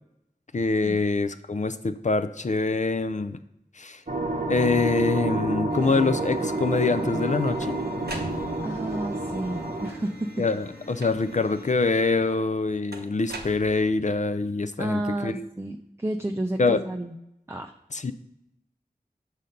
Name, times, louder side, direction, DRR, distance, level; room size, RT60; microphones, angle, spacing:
voice 1, 0.5-3.4 3.8-4.0 4.5-7.8 10.4-15.5 16.6-16.8 17.9-18.1, left 3 dB, 50° left, 10 dB, 0.4 m, -25 dB
sound 1, 4.1-9.9, right 2 dB, 50° right, 0.8 m, -29 dB
sound 2, 5.7-11.7, left 2 dB, 85° left, 1.2 m, -43 dB
sound 3, 7.1-8.9 9.7-10.3 11.0-11.5 12.9-14.2, right 2 dB, 85° right, 0.9 m, -41 dB
voice 2, 8.6-10.3 14.8-17.2 17.5-17.7, right 1 dB, 15° right, 4 dB, 0.5 m, -31 dB
6.4 x 4.1 x 5.2 m, 0.83 s
wide cardioid pair, 40°, 16 cm